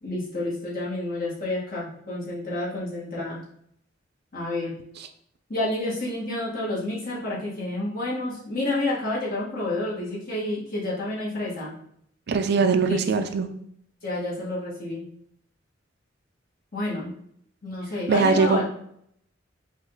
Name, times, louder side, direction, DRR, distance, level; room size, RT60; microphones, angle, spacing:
voice 1, 0.0-3.4 4.3-4.7 5.5-11.7 12.8-13.0 14.0-15.0 16.7-17.1 17.6-18.6, left 2 dB, 50° left, -6 dB, 1.8 m, -29 dB
voice 2, 12.3-13.5 18.1-18.6, right 5 dB, 60° right, 8 dB, 0.4 m, -21 dB
5.1 x 2.5 x 3.9 m, 0.69 s
head